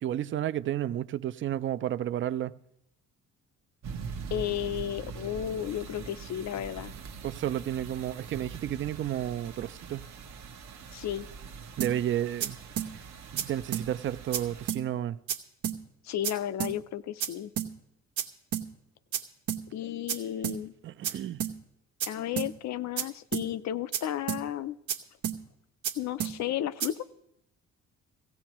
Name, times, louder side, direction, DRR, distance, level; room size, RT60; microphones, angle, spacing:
voice 1, 0.0-2.6 7.2-10.1 11.8-12.6 13.3-15.2 20.8-21.4, right 11 dB, 40° right, 0.4 m, -32 dB
sound 1, 3.8-14.7, right 5 dB, 65° right, 0.9 m, -43 dB
voice 2, 4.3-6.9 10.9-11.3 16.0-17.5 19.7-20.7 22.1-24.8 26.0-27.1, left 11 dB, 65° left, 0.5 m, -33 dB
sound 2, 11.8-11.9 12.4-12.5 12.8-12.9 13.4-13.5 13.7-13.9 14.3-14.4 14.7-14.8 15.3-15.4 15.6-15.8 16.2-16.3 16.6-16.7 17.2-17.3 17.6-17.7 18.2-18.3 18.5-18.7 19.1-19.2 19.5-19.6 20.1-20.2 20.4-20.6 21.0-21.1 21.4-21.5 22.0-22.1 22.4-22.5 23.0-23.1 23.3-23.5 23.9-24.0 24.3-24.4 24.9-25.0 25.2-25.4 25.8-25.9 26.2-26.3 26.8-26.9, right 9 dB, 85° right, 1.0 m, -30 dB
17.0 x 15.5 x 3.0 m
cardioid pair, 90°, 30 cm